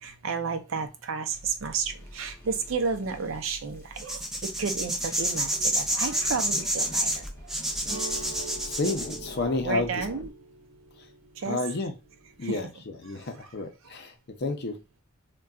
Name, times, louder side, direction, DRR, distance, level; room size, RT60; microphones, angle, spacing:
voice 1, 0.0-7.6 9.6-10.3 11.4-11.7 12.4-12.6 13.1-13.5 13.8-13.9, right 5 dB, 65° right, 0.5 m, -32 dB
sound 1, 1.3-10.3, left 1 dB, 15° left, 0.7 m, -46 dB
sound 2, 4.0-9.2, right 1 dB, ahead, 0.4 m, -28 dB
sound 3, 7.8-12.7, right 3 dB, 30° right, 0.9 m, -44 dB
voice 2, 8.6-9.9 11.5-11.9 12.4-12.7 13.0-14.1 14.4-14.8, left 3 dB, 55° left, 0.6 m, -30 dB
3.7 x 2.2 x 2.3 m
head